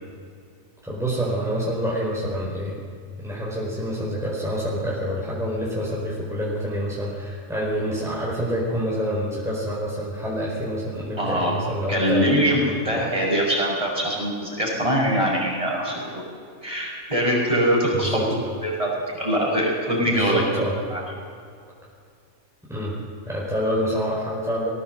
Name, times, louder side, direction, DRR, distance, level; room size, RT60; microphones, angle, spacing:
voice 1, 0.8-2.8 3.2-12.3 12.8-13.1 17.9-18.3 20.0-20.8 22.7-23.0 23.2-24.7, equal, ahead, -6 dB, 4.7 m, -27 dB
voice 2, 11.2-11.5 11.9-16.2 16.6-18.2 18.6-20.4 20.9-21.0, equal, 20° right, -3 dB, 6.1 m, -23 dB
20.0 x 17.0 x 7.7 m, 2.3 s
omnidirectional pair, 1.5 m